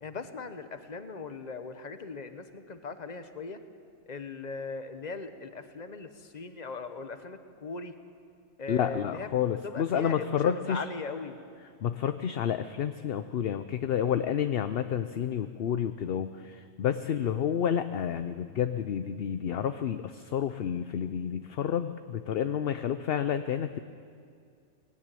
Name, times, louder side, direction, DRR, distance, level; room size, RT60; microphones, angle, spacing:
voice 1, 0.0-3.6 4.1-7.9 8.6-11.4 17.0-17.3, left 4 dB, 35° left, 9 dB, 1.1 m, -39 dB
voice 2, 8.7-10.8 11.8-23.8, left 9 dB, 55° left, 10 dB, 0.8 m, -30 dB
19.5 x 16.5 x 9.1 m, 2.3 s
omnidirectional pair, 1.3 m